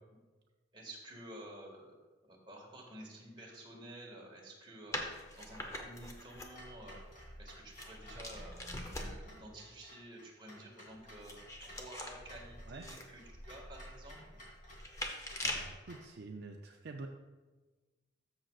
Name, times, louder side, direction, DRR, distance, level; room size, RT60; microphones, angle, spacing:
voice 1, 0.7-2.0 2.2-7.0 7.4-14.4, right 1 dB, 25° right, -2 dB, 1.8 m, -51 dB
sound 1, 4.9-9.4 10.9-15.8, left 1 dB, 15° left, 0.8 m, -44 dB
Clock, 6.5-16.1, equal, 40° left, 2.6 m, -57 dB
voice 2, 15.4-17.1, right 3 dB, 55° right, 2 dB, 0.5 m, -47 dB
13.5 x 6.4 x 2.4 m, 1.2 s
head